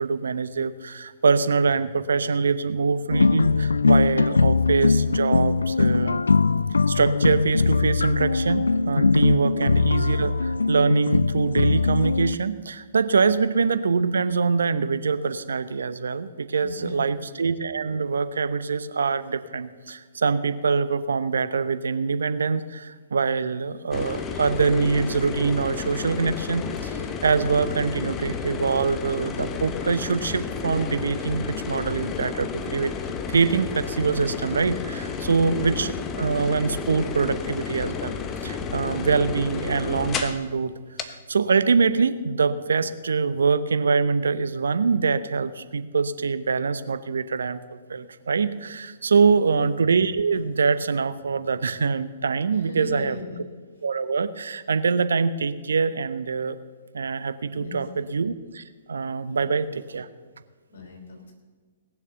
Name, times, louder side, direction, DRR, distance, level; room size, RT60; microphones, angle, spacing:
voice 1, 0.0-6.2 6.9-32.9 33.3-38.2 38.4-40.7 41.1-53.2 53.8-56.6 56.9-58.6 58.9-60.1, right 5 dB, 70° right, 13 dB, 0.8 m, -24 dB
sound 1, 3.1-12.4, left 4 dB, 80° left, 0.3 m, -21 dB
voice 2, 16.6-17.3 35.3-35.9 49.1-49.6 52.5-53.4 57.5-58.1 59.2-59.6 60.7-61.3, left 3 dB, 65° left, 2 dB, 4.8 m, -41 dB
sound 2, 23.9-40.5 41.0-41.1, left 6 dB, 25° left, 1.1 m, -32 dB
19.0 x 7.2 x 7.0 m, 1.4 s
figure-of-eight pair, 120°, 0 cm